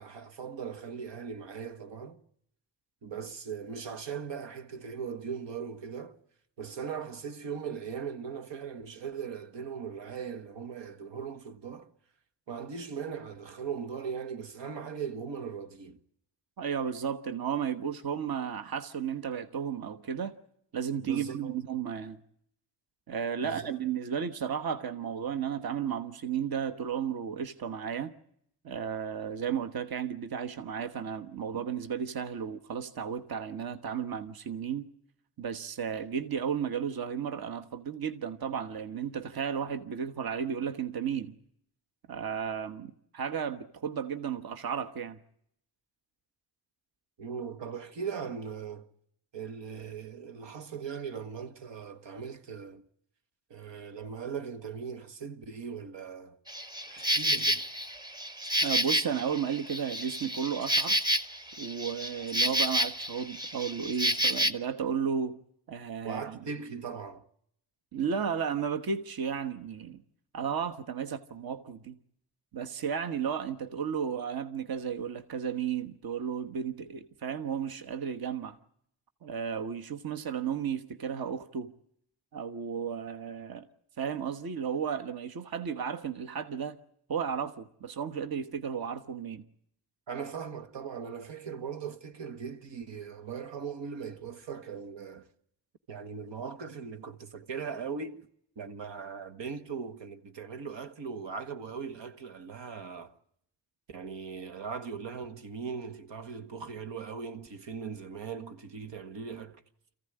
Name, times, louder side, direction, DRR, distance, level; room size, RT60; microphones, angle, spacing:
voice 1, 0.0-2.2 3.0-6.2 6.6-11.9 12.5-16.0 21.0-21.6 23.4-23.7 47.2-48.9 49.3-52.8 53.5-56.4 56.9-57.6 66.0-67.3 90.1-95.3 95.9-98.2 98.6-103.1 103.9-109.6, right 6 dB, 85° right, 1.7 m, -39 dB
voice 2, 16.6-20.3 20.7-22.2 23.1-28.1 28.6-34.9 35.4-41.3 42.1-45.2 58.6-61.0 61.6-65.4 65.7-66.4 67.9-70.0 70.3-72.0 72.5-78.6 79.2-81.7 82.3-83.7 84.0-86.8 87.1-89.4, right 7 dB, 55° right, 1.2 m, -33 dB
Insect, 56.5-64.5, right 1 dB, 10° right, 1.0 m, -29 dB
27.5 x 15.0 x 9.9 m
wide cardioid pair, 140°, 43 cm